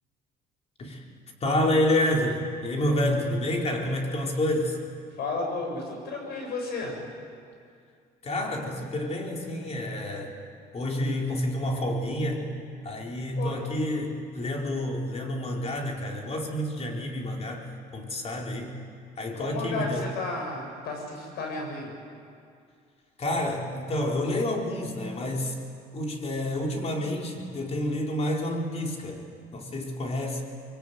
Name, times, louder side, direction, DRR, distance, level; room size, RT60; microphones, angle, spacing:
voice 1, 1.4-4.8 8.2-10.3 10.7-12.5 12.8-18.8 19.2-20.1 23.2-25.6 25.9-29.2 29.5-30.4, left 1 dB, 40° left, 0 dB, 4.3 m, -29 dB
voice 2, 5.2-6.9 13.4-13.6 19.3-21.9, left 3 dB, 75° left, 2 dB, 7.6 m, -33 dB
24.5 x 22.5 x 9.3 m, 2.3 s
cardioid pair, 110°, 17 cm